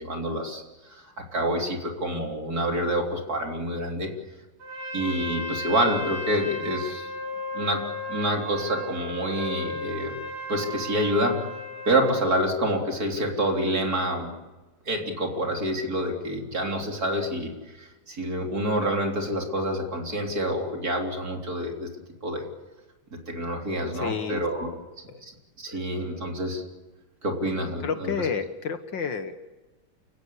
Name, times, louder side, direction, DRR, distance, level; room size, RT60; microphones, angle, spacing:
voice 1, 0.0-4.1 4.9-7.1 7.5-10.1 10.5-11.5 11.9-14.3 14.9-21.9 22.2-22.5 23.1-24.7 25.2-25.3 25.6-26.6 27.2-28.1, equal, 40° right, 2 dB, 4.1 m, -27 dB
Trumpet, 4.6-12.3, left 1 dB, 80° right, 7.5 m, -35 dB
voice 2, 23.9-24.4 25.1-25.2 25.7-25.9 27.8-29.5, left 6 dB, 60° left, 9 dB, 1.9 m, -30 dB
28.5 x 17.0 x 8.4 m, 1.2 s
omnidirectional pair, 2.4 m